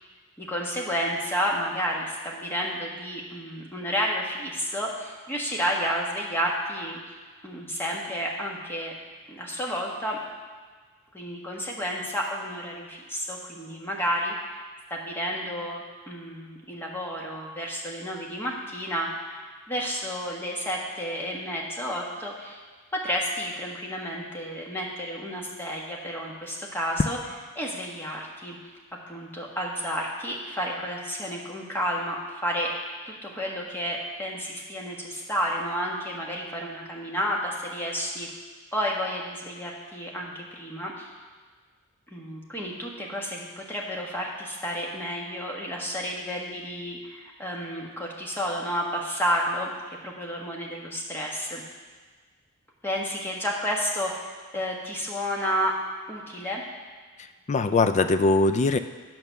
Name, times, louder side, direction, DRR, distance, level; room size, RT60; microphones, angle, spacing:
voice 1, 0.4-7.2 7.4-8.9 9.3-10.2 11.1-14.6 14.9-19.4 19.7-22.6 22.9-27.2 27.5-28.6 29.1-32.7 33.1-38.3 38.7-41.1 42.1-51.6 52.8-55.7 56.1-56.6, equal, 10° left, -2 dB, 1.5 m, -31 dB
voice 2, 57.2-58.8, left 3 dB, 30° left, 10 dB, 0.3 m, -22 dB
8.9 x 6.1 x 6.7 m, 1.5 s
head